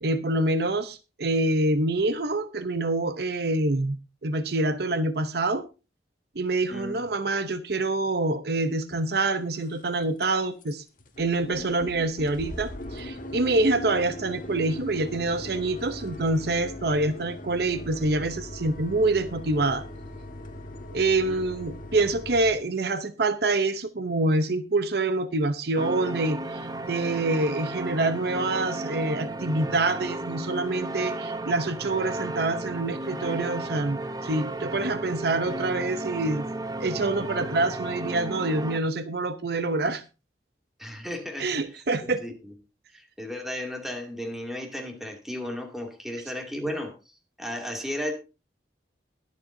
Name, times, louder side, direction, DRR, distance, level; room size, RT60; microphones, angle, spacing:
voice 1, 0.0-5.6 6.4-10.8 11.2-19.8 20.9-36.4 36.8-40.0 41.4-42.2, right 2 dB, 60° right, 11 dB, 0.8 m, -26 dB
voice 2, 6.7-7.1 21.3-21.4 40.8-41.5 42.0-42.3 42.9-46.9 47.4-48.1, left 1 dB, ahead, 2 dB, 2.5 m, -34 dB
sound 1, 8.9-9.0 9.5-9.9 10.2-10.3 10.6-10.7 11.0-22.5, left 1 dB, 50° left, 1.6 m, -39 dB
sound 2, 25.8-38.8, right 2 dB, 20° right, 0.7 m, -34 dB
21.5 x 7.4 x 2.7 m, 0.30 s
head